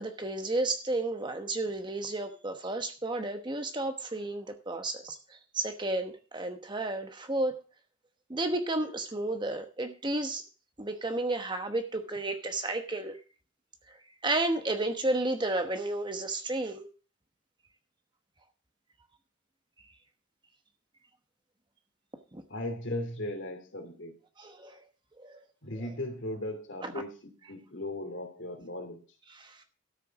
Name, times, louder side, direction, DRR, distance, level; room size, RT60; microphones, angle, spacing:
voice 1, 0.0-7.6 8.3-10.4 10.8-13.2 13.9-14.0 14.2-16.9 22.3-22.4 24.4-24.8 25.2-25.4 25.8-25.9 26.8-26.9 29.3-29.6, right 2 dB, 25° right, 7 dB, 1.0 m, -32 dB
voice 2, 22.5-24.2 25.6-29.0, left 1 dB, 65° left, 5 dB, 2.9 m, -37 dB
13.0 x 6.8 x 6.0 m, 0.37 s
head